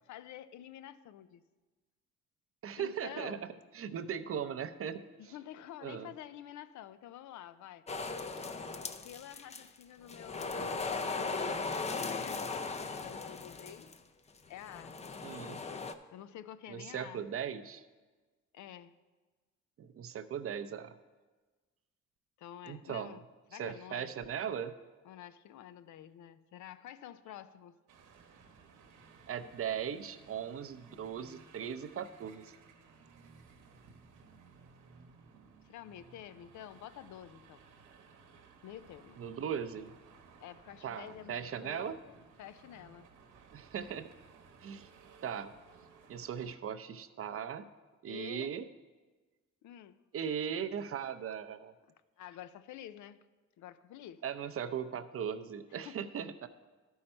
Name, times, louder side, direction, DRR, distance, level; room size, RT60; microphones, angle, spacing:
voice 1, 0.1-1.4 2.8-3.5 5.2-7.9 9.0-12.4 12.8-13.9 14.5-15.0 16.1-17.3 18.5-18.9 22.4-23.2 23.5-24.1 25.0-27.8 35.6-37.6 38.6-39.2 40.4-43.1 48.1-48.5 49.6-50.0 52.2-53.2 53.6-54.2 55.8-56.0, left 11 dB, 75° left, 14 dB, 0.5 m, -49 dB
voice 2, 2.6-3.5 3.7-5.3 5.8-6.1 15.2-15.6 16.7-17.8 19.8-21.0 22.7-23.2 23.6-24.7 29.3-32.6 39.2-40.0 40.8-42.0 43.5-44.1 44.6-44.9 45.2-45.5 46.1-47.7 48.0-48.7 50.1-51.7 54.2-56.5, right 8 dB, 50° right, 11 dB, 0.5 m, -38 dB
sound 1, 7.9-9.8 10.1-14.0 14.7-15.9, left 4 dB, 20° left, 0.5 m, -38 dB
sound 2, 27.9-46.5, right 5 dB, 85° right, 1.0 m, -59 dB
12.0 x 5.5 x 4.4 m, 1.3 s
cardioid pair, 90°, 30 cm